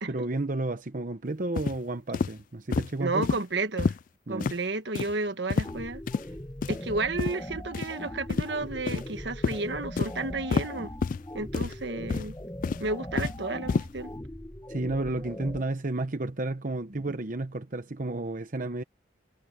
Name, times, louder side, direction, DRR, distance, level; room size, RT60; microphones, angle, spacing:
voice 1, 0.1-3.3 4.3-4.5 14.7-18.8, right 2 dB, 50° right, 0.9 m, -32 dB
sound 1, 1.6-1.8 2.1-2.3 2.7-2.9 3.2-3.4 3.8-4.0 4.4-4.6 5.0-5.1 5.5-5.7 6.1-6.2 6.6-6.8 7.2-7.3 7.7-7.9 8.3-8.5 8.9-9.1 9.4-9.6 10.0-10.1 10.5-10.7 11.0-11.2 11.5-11.7 12.1-12.3 12.6-13.4 13.7-13.9, left 5 dB, 50° left, 0.3 m, -28 dB
voice 2, 3.0-3.9 4.3-6.0 6.7-10.9 11.3-12.3 12.8-14.1, right 3 dB, 75° right, 1.5 m, -32 dB
sound 2, 5.6-15.6, left 1 dB, 15° left, 1.4 m, -40 dB
head